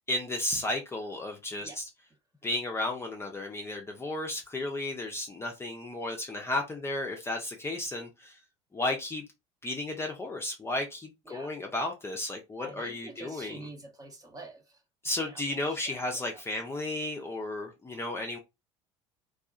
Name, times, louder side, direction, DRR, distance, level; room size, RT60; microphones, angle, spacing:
voice 1, 0.1-1.9 2.4-8.4 8.7-9.2 9.6-13.7 15.0-18.4, left 2 dB, 15° left, 0.6 m, -33 dB
voice 2, 12.6-14.6 15.2-15.4 15.7-16.4, right 2 dB, 25° right, 0.9 m, -46 dB
2.6 x 2.4 x 2.3 m
hypercardioid pair, 80°, 15 cm